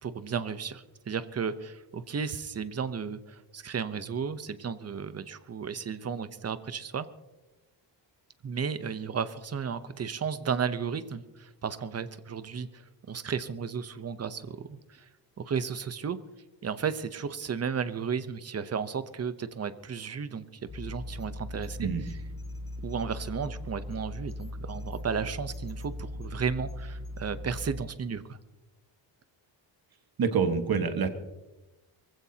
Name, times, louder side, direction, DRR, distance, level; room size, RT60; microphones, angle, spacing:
voice 1, 0.0-7.1 8.4-15.1 15.4-16.2 16.6-20.5 20.7-22.1 22.8-28.4, right 6 dB, 35° right, 13 dB, 0.9 m, -34 dB
sound 1, 20.7-27.8, left 1 dB, 30° left, 1.7 m, -39 dB
voice 2, 30.2-31.1, right 6 dB, 55° right, 7 dB, 1.6 m, -26 dB
23.5 x 15.5 x 2.9 m, 1.0 s
cardioid pair, 125°, 44 cm